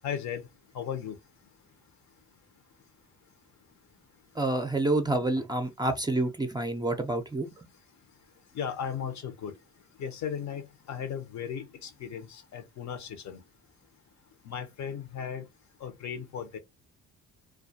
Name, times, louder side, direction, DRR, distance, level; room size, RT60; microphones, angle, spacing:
voice 1, 0.0-0.4 0.7-1.2 8.5-9.5 10.0-13.4 14.4-15.5 15.8-16.6, left 8 dB, 65° left, 0.7 m, -36 dB
voice 2, 4.4-7.7, right 2 dB, 15° right, 0.4 m, -28 dB
2.3 x 2.2 x 2.6 m
cardioid pair, 90°, 30 cm